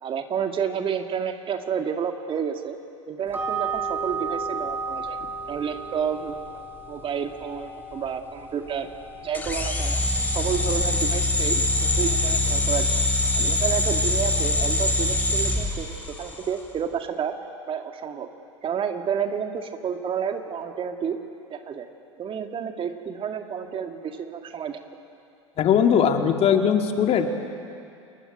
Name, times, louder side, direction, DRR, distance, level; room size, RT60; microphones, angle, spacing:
voice 1, 0.0-2.8 3.1-5.2 5.5-6.4 6.9-8.9 9.2-10.0 10.3-13.0 13.3-15.9 16.2-17.3 17.7-18.3 18.6-21.2 21.5-21.9 22.2-24.8, right 7 dB, 35° right, 5 dB, 2.2 m, -30 dB
sound 1, 3.3-15.7, right 4 dB, 15° right, 5.2 m, -36 dB
sound 2, 9.3-16.5, left 1 dB, 10° left, 5.3 m, -23 dB
voice 2, 25.6-27.3, left 8 dB, 40° left, 5 dB, 2.4 m, -20 dB
28.5 x 21.5 x 9.0 m, 2.5 s
figure-of-eight pair, 80°, 16 cm